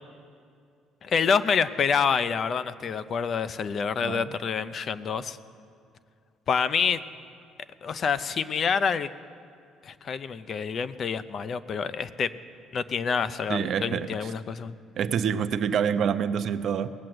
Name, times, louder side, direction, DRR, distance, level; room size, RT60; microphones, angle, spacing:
voice 1, 1.0-5.4 6.5-7.0 7.8-9.1 9.8-12.3 12.7-14.7, left 6 dB, 40° left, 14 dB, 0.4 m, -27 dB
voice 2, 13.5-14.3 15.0-16.9, right 7 dB, 55° right, 11 dB, 0.5 m, -27 dB
18.0 x 7.6 x 7.7 m, 2.3 s
cardioid pair, 125°, 0 cm